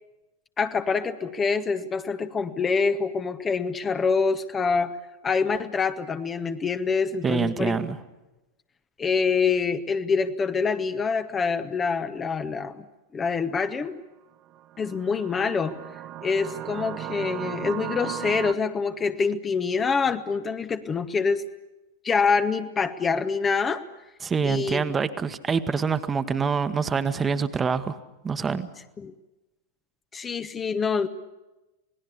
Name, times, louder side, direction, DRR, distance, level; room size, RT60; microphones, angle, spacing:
voice 1, 0.6-5.0 5.2-7.8 9.0-12.9 13.1-14.0 14.8-15.8 16.2-21.4 22.0-23.8 24.4-24.8 29.0-29.1 30.1-31.1, left 5 dB, 20° left, 10 dB, 1.0 m, -25 dB
voice 2, 7.2-8.0 24.2-28.0 28.2-28.7, right 5 dB, 20° right, 11 dB, 1.3 m, -25 dB
sound 1, 14.5-18.5, right 13 dB, 35° right, 0.9 m, -36 dB
27.0 x 19.0 x 8.4 m, 1.0 s
figure-of-eight pair, 90°, 0 cm